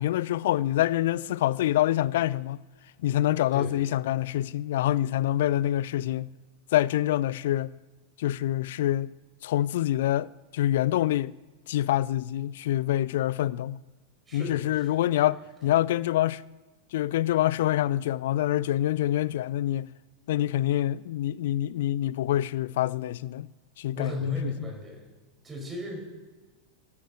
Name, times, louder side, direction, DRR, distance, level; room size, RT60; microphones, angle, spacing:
voice 1, 0.0-2.6 3.0-6.3 6.7-7.7 8.2-9.1 9.4-11.3 11.7-13.8 14.3-16.4 16.9-19.9 20.3-23.5 23.8-24.7, left 13 dB, 55° left, 0.4 m, -26 dB
voice 2, 14.3-15.1 23.9-25.0 25.4-26.0, left 1 dB, 15° right, 5.0 m, -35 dB
12.0 x 11.5 x 7.7 m
figure-of-eight pair, 90°, 0 cm